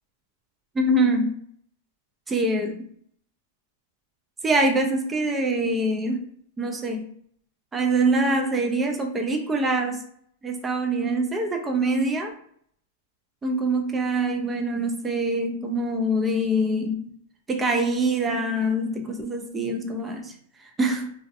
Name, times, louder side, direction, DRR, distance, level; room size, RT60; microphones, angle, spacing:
voice 1, 0.8-1.3 2.3-2.8 4.4-6.2 6.6-7.0 7.7-10.0 10.4-12.3 13.4-17.1 17.5-20.3 20.8-21.1, right 1 dB, 15° right, 3 dB, 0.3 m, -24 dB
2.5 x 2.2 x 2.4 m, 0.65 s
hypercardioid pair, 140°, 0 cm